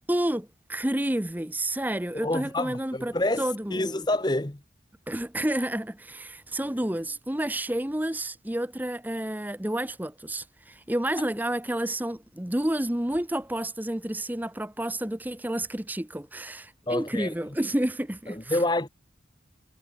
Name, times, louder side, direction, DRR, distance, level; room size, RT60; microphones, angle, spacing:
voice 1, 0.1-4.0 5.1-18.6, right 1 dB, 10° right, 0.8 m, -30 dB
voice 2, 2.1-4.6 16.9-17.3 18.3-18.9, left 1 dB, 25° left, 1.0 m, -28 dB
head